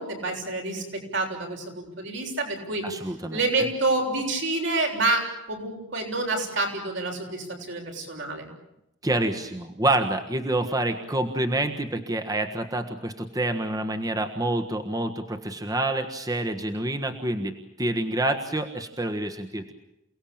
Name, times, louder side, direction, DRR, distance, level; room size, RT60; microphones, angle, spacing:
voice 1, 0.0-2.8 3.3-8.5, right 2 dB, 70° right, 2 dB, 7.0 m, -28 dB
voice 2, 2.8-3.4 9.0-19.7, right 1 dB, 20° right, 5 dB, 1.4 m, -27 dB
28.5 x 18.5 x 8.8 m, 0.87 s
head